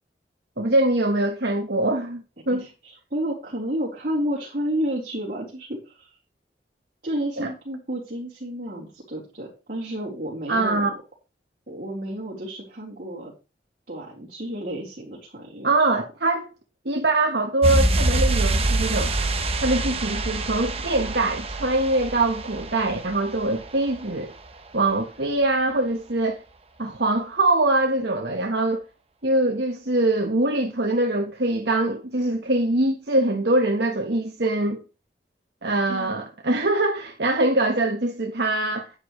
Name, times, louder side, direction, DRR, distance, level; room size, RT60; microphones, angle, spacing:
voice 1, 0.6-2.6 7.4-7.5 10.5-10.9 15.6-16.5 16.8-19.1 19.6-24.3 24.7-26.4 26.8-28.8 29.2-34.8 35.6-38.9, right 2 dB, 70° right, 1.4 m, -23 dB
voice 2, 2.5-6.2 7.0-10.9 11.7-13.3 13.9-15.9 35.9-36.1, equal, 50° right, 4.2 m, -31 dB
sound 1, 17.6-24.1 24.4-24.5, right 2 dB, 35° right, 1.3 m, -25 dB
11.5 x 10.0 x 3.2 m
head